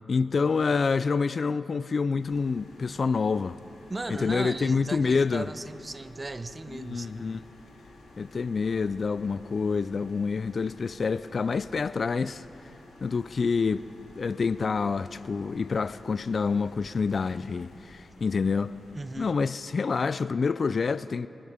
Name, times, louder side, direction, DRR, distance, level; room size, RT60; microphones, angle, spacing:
voice 1, 0.1-3.6 4.1-5.5 6.7-7.4 8.2-12.4 13.0-13.9 14.2-18.7 19.2-21.3, left 5 dB, 60° left, 0.3 m, -27 dB
AC cycle w comp, 2.2-19.2, left 2 dB, 85° left, 1.9 m, -52 dB
voice 2, 3.9-7.1 18.9-19.3, right 2 dB, 35° right, 0.7 m, -36 dB
23.0 x 8.8 x 6.6 m
cardioid pair, 45°, 0 cm